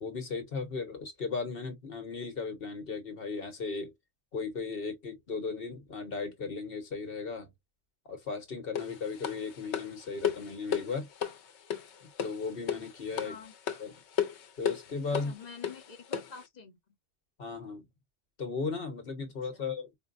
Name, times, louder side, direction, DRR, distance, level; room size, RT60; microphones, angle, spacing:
voice 1, 0.0-3.9 4.3-7.5 8.1-11.1 12.2-13.4 13.8-13.9 14.6-15.3 17.4-17.9 18.4-19.9, left 4 dB, 60° left, 1.3 m, -36 dB
sound 1, 8.8-16.4, left 8 dB, 90° left, 1.0 m, -35 dB
voice 2, 13.2-13.5 15.1-16.8 19.5-19.6, left 5 dB, 45° left, 0.9 m, -47 dB
4.6 x 2.2 x 2.4 m
omnidirectional pair, 1.1 m